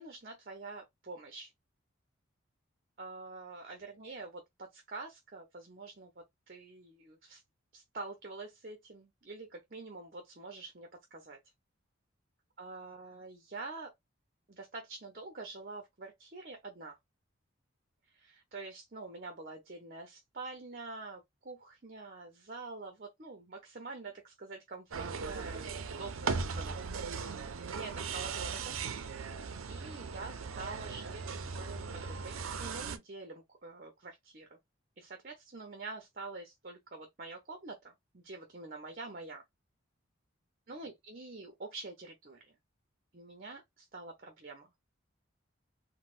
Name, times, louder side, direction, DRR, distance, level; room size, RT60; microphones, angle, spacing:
voice 1, 0.0-1.5 3.0-7.4 7.7-11.4 12.6-13.9 14.5-17.0 18.1-26.8 27.7-28.8 29.7-34.6 35.0-39.4 40.7-42.5 43.1-44.7, right 3 dB, 45° right, 0.7 m, -46 dB
sound 1, 24.9-33.0, right 5 dB, 85° right, 0.5 m, -38 dB
4.0 x 2.1 x 2.4 m
head